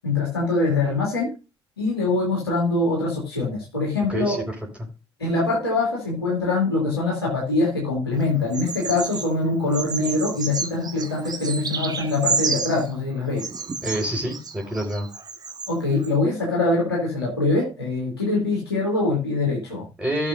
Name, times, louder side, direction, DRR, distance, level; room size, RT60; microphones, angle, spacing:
voice 1, 0.0-1.3 1.8-4.4 5.2-13.5 15.7-19.8, left 3 dB, 85° left, -5 dB, 2.6 m, -23 dB
voice 2, 4.1-4.4 4.8-4.9 13.8-15.1 20.0-20.3, right 1 dB, 10° right, -2 dB, 4.7 m, -27 dB
Bird vocalization bird call bird song, 8.5-9.3 9.7-12.9 13.4-15.7 16.0-16.1, right 4 dB, 30° right, 1.6 m, -30 dB
16.5 x 6.8 x 2.6 m, 0.30 s
figure-of-eight pair, 45°, 12 cm